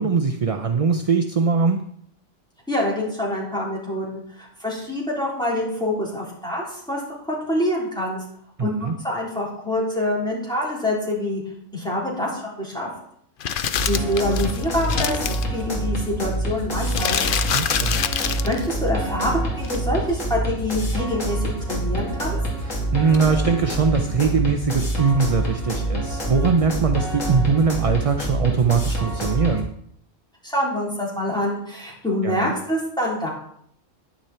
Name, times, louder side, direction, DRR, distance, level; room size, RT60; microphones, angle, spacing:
voice 1, 0.0-1.8 8.6-8.9 17.5-18.0 22.6-29.7 32.2-32.4, right 5 dB, 35° right, 6 dB, 0.6 m, -21 dB
voice 2, 2.7-8.2 8.6-11.4 11.7-12.9 13.9-15.2 15.5-17.2 18.4-22.4 30.4-33.3, left 1 dB, 5° left, -4 dB, 3.9 m, -26 dB
sound 1, 13.4-15.5 16.9-18.6 19.6-19.8, left 8 dB, 55° left, 0.6 m, -25 dB
sound 2, 13.7-29.6, right 1 dB, 85° left, 2.9 m, -26 dB
10.5 x 10.0 x 4.4 m, 0.66 s
omnidirectional pair, 1.3 m